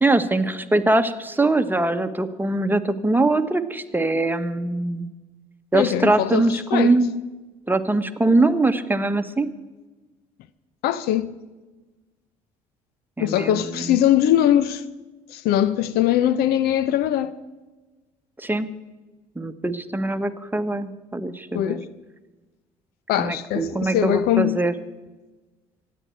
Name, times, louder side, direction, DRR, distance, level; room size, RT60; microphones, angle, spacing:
voice 1, 0.0-5.1 5.7-7.1 7.7-9.5 13.2-14.0 18.4-18.7 19.3-21.8 23.2-24.7, right 2 dB, 10° right, 1.3 m, -22 dB
voice 2, 5.7-7.0 10.8-11.3 13.2-14.8 15.3-17.4 21.5-21.9 23.1-24.6, left 11 dB, 65° left, 0.7 m, -21 dB
26.0 x 9.5 x 4.6 m
hypercardioid pair, 55°, 18 cm